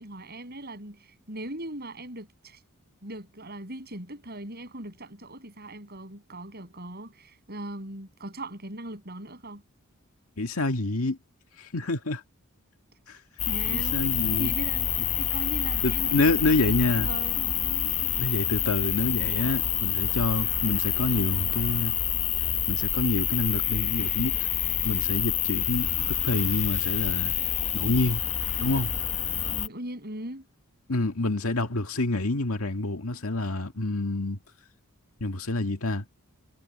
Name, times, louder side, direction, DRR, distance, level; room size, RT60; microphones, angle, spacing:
voice 1, 0.0-2.6 3.0-9.6 13.5-14.1 14.4-18.2 29.5-30.5, right 1 dB, 45° right, 7.4 m, -39 dB
voice 2, 10.4-11.2 11.6-12.2 13.1-13.2 13.7-14.5 15.8-17.1 18.2-22.0 22.7-24.4 24.8-27.3 27.7-28.2 28.6-28.9 30.9-34.4 35.2-36.0, left 2 dB, 75° left, 1.9 m, -27 dB
sound 1, 13.4-29.7, left 9 dB, 30° left, 0.8 m, -27 dB
head